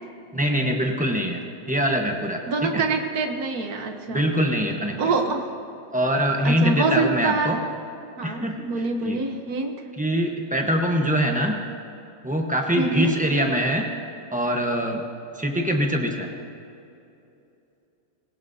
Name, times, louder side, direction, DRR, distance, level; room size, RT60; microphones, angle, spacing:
voice 1, 0.3-2.8 4.1-5.1 5.9-7.6 8.2-9.2 10.0-11.6 12.2-13.9 14.3-15.0 15.3-16.3, equal, 10° right, 1 dB, 0.3 m, -24 dB
voice 2, 2.5-4.3 5.0-5.5 6.4-7.7 8.2-9.7 12.8-13.2, right 3 dB, 55° right, 5 dB, 1.2 m, -25 dB
20.5 x 17.5 x 2.7 m, 2.7 s
omnidirectional pair, 2.2 m